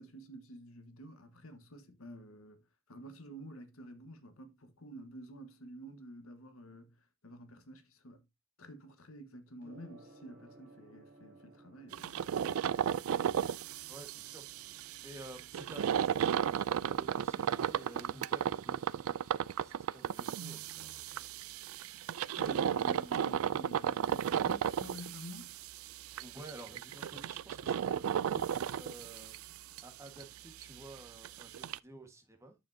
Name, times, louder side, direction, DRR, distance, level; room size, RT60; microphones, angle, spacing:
voice 1, 0.0-2.6 2.9-6.9 7.2-8.2 8.6-12.8 22.4-25.5, right 1 dB, 80° left, 1.3 m, -50 dB
Gong, 9.6-28.6, right 2 dB, 50° right, 3.4 m, -64 dB
sound 1, 11.9-29.8 30.1-30.2 30.6-30.7 31.0-31.1 31.2-31.8, right 8 dB, 80° right, 0.3 m, -34 dB
voice 2, 13.4-21.5 26.2-29.4 29.8-32.5, right 1 dB, 15° right, 1.5 m, -53 dB
9.0 x 7.1 x 2.7 m
head